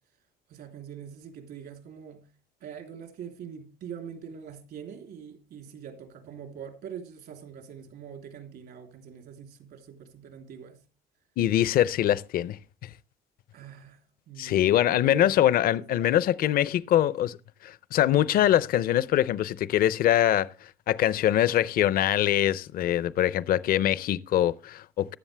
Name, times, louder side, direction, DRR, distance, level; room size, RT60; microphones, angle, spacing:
voice 1, 0.5-2.2 2.6-10.8 13.5-14.0 14.3-14.8 15.0-15.3 15.6-15.8 16.4-16.6 16.9-17.0, right 8 dB, 70° right, 3.3 m, -43 dB
voice 2, 11.4-12.9 14.4-17.4 17.6-20.5 20.9-25.2, left 12 dB, 60° left, 0.6 m, -23 dB
15.0 x 10.5 x 3.4 m
cardioid pair, 110°, 17 cm